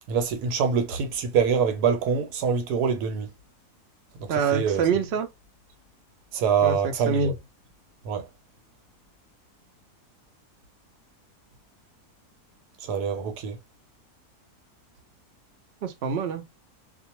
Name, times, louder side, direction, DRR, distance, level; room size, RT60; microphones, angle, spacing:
voice 1, 0.1-3.3 4.2-4.8 6.3-7.3 8.0-8.2 12.8-13.6, right 6 dB, 85° right, 1.2 m, -25 dB
voice 2, 4.3-5.3 6.6-7.3 15.8-16.4, right 6 dB, 70° right, 0.6 m, -26 dB
2.5 x 2.1 x 2.9 m
omnidirectional pair, 1.6 m